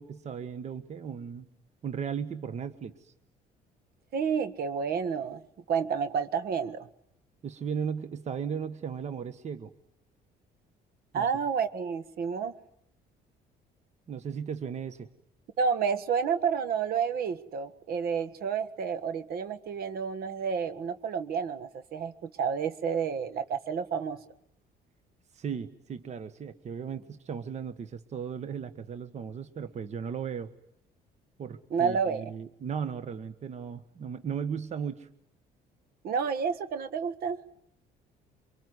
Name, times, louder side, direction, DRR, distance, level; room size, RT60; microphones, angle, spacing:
voice 1, 0.0-1.5 1.8-3.1 7.4-9.7 11.1-11.3 14.1-15.1 25.3-30.5 31.4-35.1, right 7 dB, 40° right, 12 dB, 1.3 m, -36 dB
voice 2, 4.1-5.4 5.7-6.9 11.1-12.5 15.6-24.2 31.7-32.2 36.0-37.4, right 6 dB, 65° right, 11 dB, 1.7 m, -30 dB
24.5 x 23.5 x 9.7 m, 0.70 s
cardioid pair, 110°, 17 cm